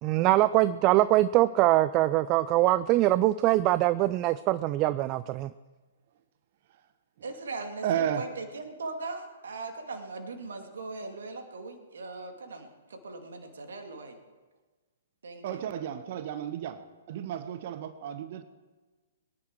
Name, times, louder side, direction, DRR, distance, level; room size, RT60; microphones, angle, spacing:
voice 1, 0.0-5.5, right 16 dB, 30° right, 15 dB, 0.4 m, -23 dB
voice 2, 7.2-14.2 15.2-15.7, right 3 dB, 65° right, 5 dB, 2.3 m, -39 dB
voice 3, 7.8-8.3 15.4-16.8 17.1-18.4, right 9 dB, 50° right, 11 dB, 1.0 m, -32 dB
22.5 x 10.5 x 4.6 m, 1.3 s
figure-of-eight pair, 120°, 0 cm